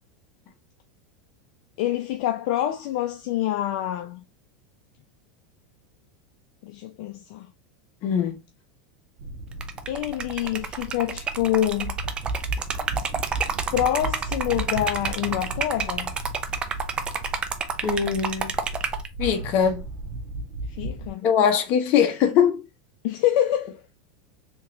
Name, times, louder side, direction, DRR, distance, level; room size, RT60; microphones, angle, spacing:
voice 1, 1.8-4.2 6.6-7.5 9.9-12.0 13.7-16.1 20.7-21.3 23.0-23.8, left 12 dB, 65° left, 0.5 m, -26 dB
voice 2, 8.0-8.4 17.8-18.6 19.2-19.8 21.2-22.6, left 8 dB, 45° left, 1.0 m, -21 dB
sound 1, 9.2-21.1, right 2 dB, 60° right, 0.9 m, -35 dB
Liquid, 9.5-19.1, right 5 dB, 25° right, 0.5 m, -30 dB
3.6 x 3.0 x 2.7 m
supercardioid pair, 135°, 4 cm